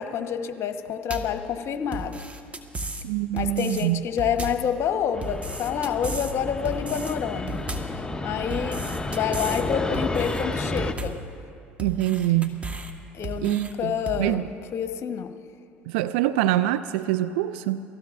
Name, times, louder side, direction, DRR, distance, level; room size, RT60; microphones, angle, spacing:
voice 1, 0.0-2.2 3.3-8.8 9.1-11.2 13.1-14.4 14.7-15.3, left 8 dB, 50° left, 7 dB, 1.2 m, -28 dB
sound 1, 1.1-1.4 1.9-3.1 3.4-3.8 4.2-4.7 5.2-6.3 6.6-7.1 7.5-8.0 8.5-9.6 9.9-10.4 10.8-11.3 11.8-12.9 13.2-13.7 14.1-14.3, right 2 dB, 20° right, 1.5 m, -34 dB
voice 2, 3.0-4.0 11.8-12.6 13.4-14.4 15.9-17.8, right 14 dB, 70° right, 12 dB, 0.4 m, -25 dB
Fixed-wing aircraft airplane, 5.1-10.9, left 2 dB, 15° left, 0.9 m, -31 dB
28.5 x 19.0 x 2.6 m, 2.5 s
hypercardioid pair, 65°, 6 cm